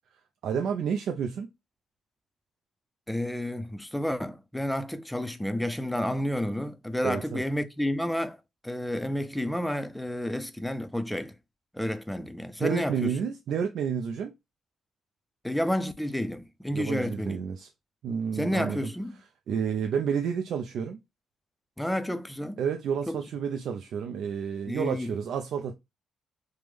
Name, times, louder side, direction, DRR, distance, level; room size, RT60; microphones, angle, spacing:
voice 1, 0.4-1.5 7.0-7.4 12.6-14.3 16.7-17.7 18.0-18.9 19.5-21.0 22.6-25.8, right 7 dB, 70° right, 0.4 m, -30 dB
voice 2, 3.1-8.4 8.6-11.3 11.7-13.3 15.4-17.4 18.3-19.2 21.8-22.6 23.1-23.2 24.7-25.1, left 1 dB, 5° left, 0.4 m, -30 dB
3.2 x 2.0 x 3.4 m
cardioid pair, 90°, 0 cm